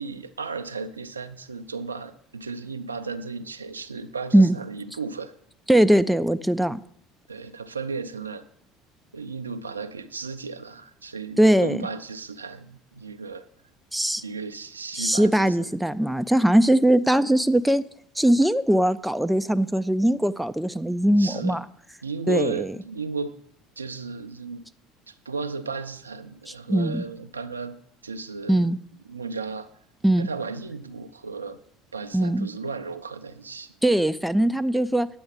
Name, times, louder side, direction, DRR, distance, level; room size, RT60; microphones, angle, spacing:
voice 1, 0.0-5.3 7.3-8.4 9.1-13.4 14.2-15.7 21.2-21.6 22.0-23.3 23.8-24.7 25.1-27.8 28.0-28.8 29.1-29.7 30.2-31.6 31.9-33.7, right 4 dB, 85° right, 10 dB, 0.4 m, -34 dB
voice 2, 5.7-6.8 11.4-11.9 13.9-14.2 14.9-17.8 18.2-21.6 22.3-22.7 26.7-27.1 28.5-28.8 30.0-30.3 32.1-32.5 33.8-35.1, right 1 dB, 5° right, 12 dB, 0.4 m, -20 dB
9.3 x 7.0 x 5.3 m, 0.68 s
figure-of-eight pair, 65°, 0 cm